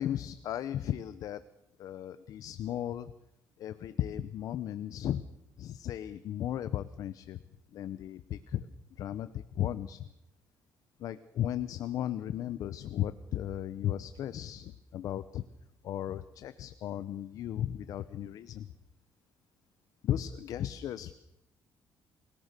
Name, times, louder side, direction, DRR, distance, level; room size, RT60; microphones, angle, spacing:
voice 1, 0.0-1.4 1.8-3.1 3.6-5.2 5.6-7.4 7.7-8.7 9.0-10.0 11.0-15.4 15.8-18.7 20.0-21.1, left 11 dB, 65° left, 13 dB, 0.9 m, -35 dB
28.5 x 18.0 x 6.8 m, 0.89 s
cardioid pair, 160°, 7 cm